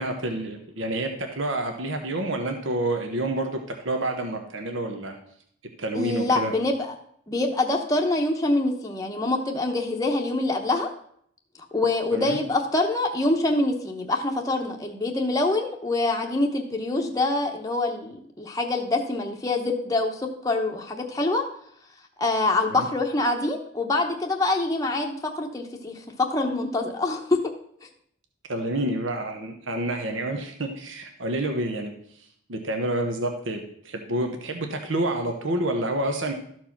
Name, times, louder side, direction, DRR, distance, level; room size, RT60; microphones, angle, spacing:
voice 1, 0.0-5.1 5.8-6.5 12.1-12.4 22.7-22.9 28.5-31.9 32.5-36.3, right 1 dB, 70° right, 4 dB, 1.1 m, -28 dB
voice 2, 5.9-6.9 7.3-10.9 11.7-21.4 22.2-27.4, left 2 dB, 15° left, 1 dB, 0.9 m, -25 dB
13.0 x 4.6 x 5.9 m, 0.66 s
head